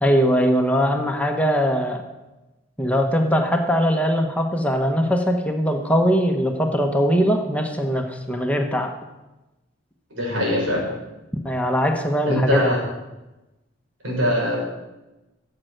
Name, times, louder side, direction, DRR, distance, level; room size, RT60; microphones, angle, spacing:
voice 1, 0.0-2.0 2.8-8.9 11.4-12.6, equal, 5° left, 3 dB, 1.1 m, -21 dB
voice 2, 10.1-10.9 12.2-12.8 14.0-14.6, equal, 90° right, -2 dB, 5.6 m, -22 dB
14.0 x 7.6 x 6.6 m, 1.0 s
head